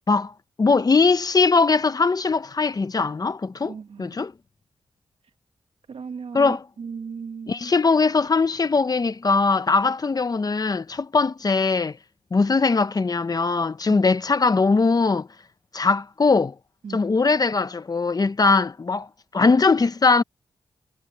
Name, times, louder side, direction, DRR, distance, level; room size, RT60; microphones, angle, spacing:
voice 1, 0.6-4.3 6.3-6.6 7.5-12.0 12.3-15.3 15.7-16.5 16.9-19.1 19.3-20.2, left 4 dB, 35° left, 0.9 m, -20 dB
voice 2, 3.6-4.1 5.9-7.6 16.8-17.1, right 6 dB, 70° right, 1.9 m, -36 dB
cardioid pair, 85°, 10 cm